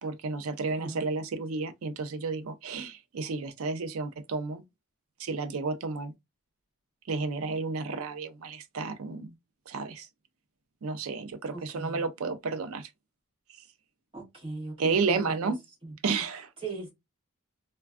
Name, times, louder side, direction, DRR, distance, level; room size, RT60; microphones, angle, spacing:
voice 1, 0.0-4.6 5.2-6.1 7.1-9.3 9.7-10.1 10.8-12.9 14.8-15.6 16.0-16.5, right 4 dB, 80° right, 0.4 m, -31 dB
voice 2, 0.7-1.0 11.5-12.1 14.1-15.6 15.8-16.0 16.6-16.9, right 3 dB, 25° right, 1.1 m, -39 dB
3.3 x 2.2 x 2.3 m
head